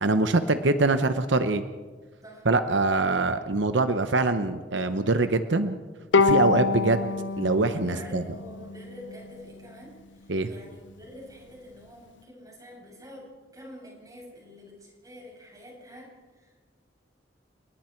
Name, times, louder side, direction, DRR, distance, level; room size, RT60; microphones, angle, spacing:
voice 1, 0.0-1.6 2.5-5.8 6.2-7.0 7.4-8.2 10.3-10.5, right 3 dB, 80° right, 9 dB, 0.9 m, -24 dB
Bowed string instrument, 6.1-9.5, left 4 dB, 80° left, 0.6 m, -26 dB
voice 2, 7.7-16.7, equal, 20° right, -2 dB, 8.0 m, -47 dB
30.0 x 19.5 x 4.6 m, 1.4 s
head